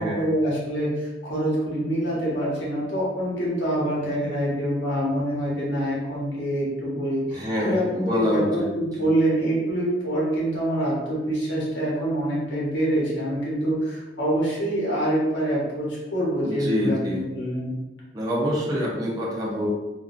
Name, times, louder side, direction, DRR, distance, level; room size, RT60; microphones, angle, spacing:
voice 1, 0.0-17.7, right 1 dB, 75° left, -6 dB, 1.1 m, -25 dB
voice 2, 7.3-8.7 9.0-9.1 16.4-17.2 18.1-19.7, equal, 20° right, -5 dB, 0.5 m, -26 dB
3.6 x 2.2 x 2.5 m, 1.1 s
head